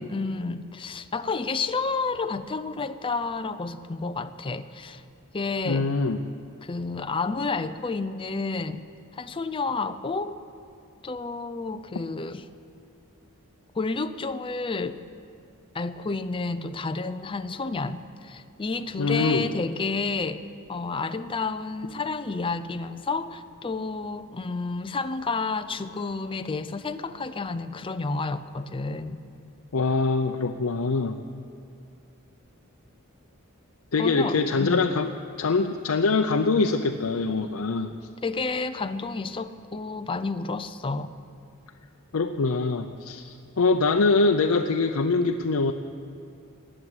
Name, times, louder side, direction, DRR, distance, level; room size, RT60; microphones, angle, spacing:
voice 1, 0.1-5.0 5.3-5.9 6.6-8.8 9.1-10.4 11.0-12.4 13.7-15.0 15.7-20.4 20.7-29.2 34.0-34.9 38.2-41.1, left 3 dB, 25° left, 10 dB, 0.5 m, -30 dB
voice 2, 5.7-6.2 19.0-19.5 29.7-31.2 33.9-35.1 35.4-37.9 42.1-45.7, left 3 dB, 75° left, 4 dB, 0.6 m, -24 dB
19.0 x 7.5 x 9.6 m, 2.5 s
head